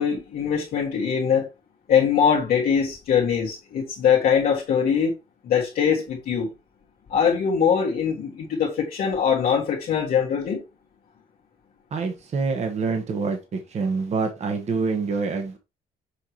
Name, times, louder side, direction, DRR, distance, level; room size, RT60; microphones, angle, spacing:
voice 1, 0.0-1.5 1.9-5.1 5.4-6.5 7.1-10.6, left 7 dB, 60° left, 1.7 m, -22 dB
voice 2, 11.9-15.6, right 4 dB, 40° right, 1.3 m, -26 dB
6.5 x 4.8 x 3.1 m
cardioid pair, 110°, 17 cm